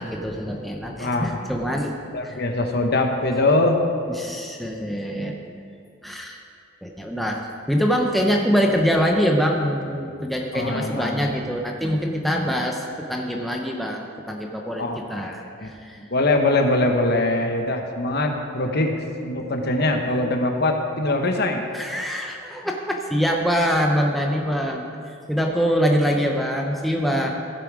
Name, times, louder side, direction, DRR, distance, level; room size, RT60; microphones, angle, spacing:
voice 1, 0.0-1.9 2.2-2.4 4.1-5.4 6.0-6.4 6.8-7.4 7.7-12.8 13.1-14.8 15.1-16.1 21.7-24.9 25.3-27.3, equal, ahead, 0 dB, 0.7 m, -24 dB
voice 2, 2.1-3.8 5.1-5.2 10.5-11.3 14.8-15.7 16.1-21.8, left 2 dB, 50° left, 4 dB, 1.1 m, -23 dB
15.5 x 7.5 x 4.8 m, 2.5 s
head